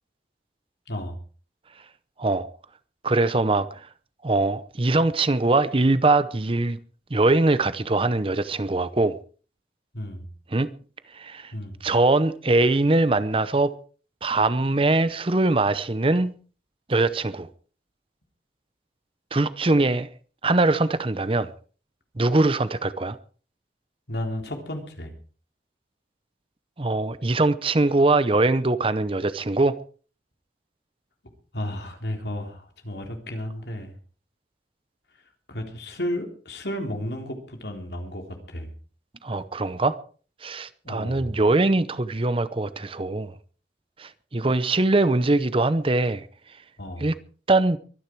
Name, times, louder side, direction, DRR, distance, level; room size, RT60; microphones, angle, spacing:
voice 1, 3.0-3.9 4.2-6.8 7.1-9.2 10.5-10.7 11.1-11.5 11.8-13.7 14.2-16.3 16.9-17.5 19.3-20.1 20.4-21.5 22.2-23.2 26.8-29.8 39.2-40.0 40.4-43.3 44.0-46.3 47.0-47.1 47.5-47.8, right 2 dB, 30° right, 0.7 m, -22 dB
voice 2, 9.9-10.3 11.5-11.8 24.1-25.1 31.5-33.9 35.5-38.7 40.8-41.3 46.8-47.1, left 1 dB, 65° left, 3.6 m, -33 dB
23.5 x 10.5 x 4.6 m
head